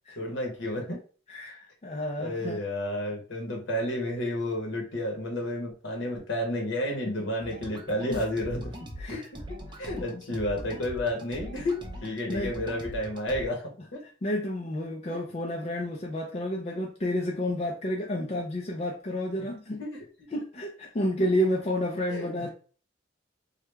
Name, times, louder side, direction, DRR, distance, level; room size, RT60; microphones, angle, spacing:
voice 1, 0.2-1.0 2.2-8.7 9.1-14.0 15.1-15.2 19.4-19.5 19.8-20.0 22.1-22.5, left 1 dB, 70° left, 1 dB, 0.9 m, -31 dB
voice 2, 1.3-2.6 7.2-7.3 8.1-8.3 9.0-9.3 10.0-10.2 12.3-12.6 14.0-19.8 20.3-22.5, left 1 dB, 35° left, 0 dB, 0.5 m, -30 dB
sound 1, 7.4-13.4, equal, 25° right, 0.6 m, -41 dB
3.3 x 2.3 x 3.1 m, 0.39 s
head